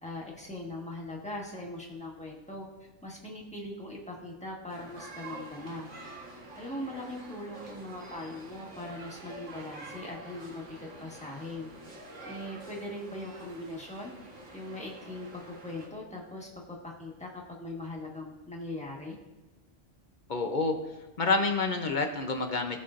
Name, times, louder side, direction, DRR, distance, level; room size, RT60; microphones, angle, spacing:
voice 1, 0.0-2.7 3.0-5.9 6.6-11.7 12.2-14.1 14.5-17.3 17.6-19.2, left 1 dB, 5° left, -2 dB, 1.3 m, -40 dB
sound 1, 4.7-15.9, right 2 dB, 90° right, 1.8 m, -47 dB
voice 2, 20.3-20.8 21.2-22.8, left 3 dB, 45° left, 5 dB, 0.7 m, -28 dB
16.0 x 5.5 x 2.5 m, 1.1 s
omnidirectional pair, 1.2 m